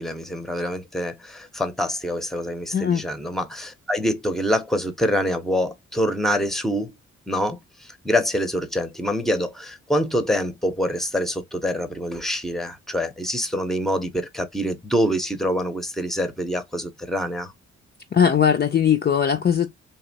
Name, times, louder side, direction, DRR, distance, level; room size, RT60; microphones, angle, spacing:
voice 1, 0.0-6.9 7.3-7.6 8.0-17.5, equal, ahead, 0.7 m, -25 dB
voice 2, 2.7-3.0 18.1-19.7, left 8 dB, 35° left, 0.4 m, -19 dB
2.8 x 2.1 x 2.7 m
supercardioid pair, 50°, 31 cm